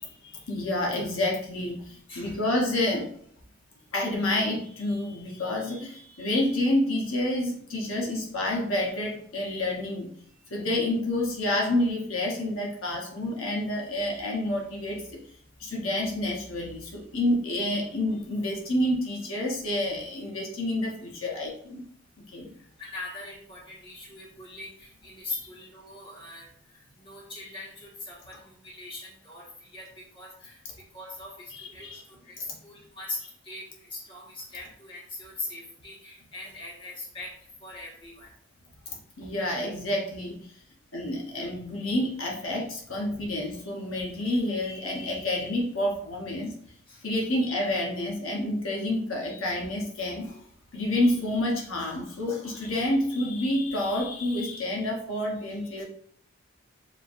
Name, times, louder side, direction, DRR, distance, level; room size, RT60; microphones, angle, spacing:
voice 1, 0.0-3.1 3.9-10.1 10.5-15.2 15.6-21.8 22.3-22.5 25.3-25.5 31.5-32.0 39.2-40.4 40.9-46.5 47.0-50.4 50.7-55.8, left 1 dB, 80° left, -2 dB, 0.9 m, -29 dB
voice 2, 2.1-2.4 22.6-30.6 30.9-38.3 46.9-47.0, left 2 dB, 25° left, -5 dB, 1.3 m, -41 dB
6.5 x 2.6 x 2.5 m, 0.63 s
head